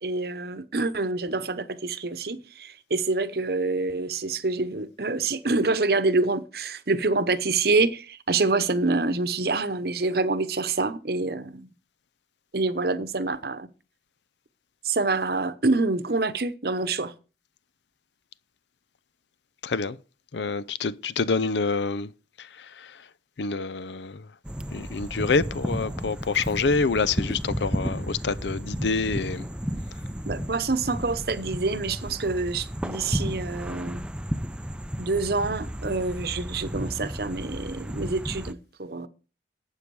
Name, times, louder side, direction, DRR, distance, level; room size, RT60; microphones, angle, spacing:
voice 1, 0.0-11.7 12.5-13.7 14.8-17.1 30.3-34.0 35.0-39.1, right 3 dB, 60° right, 0.9 m, -26 dB
voice 2, 19.6-20.0 20.3-22.1 22.4-23.0 23.4-24.3 24.7-29.5, left 4 dB, 75° left, 0.6 m, -27 dB
sound 1, 24.5-38.5, equal, 5° right, 0.5 m, -33 dB
12.0 x 8.5 x 4.7 m
head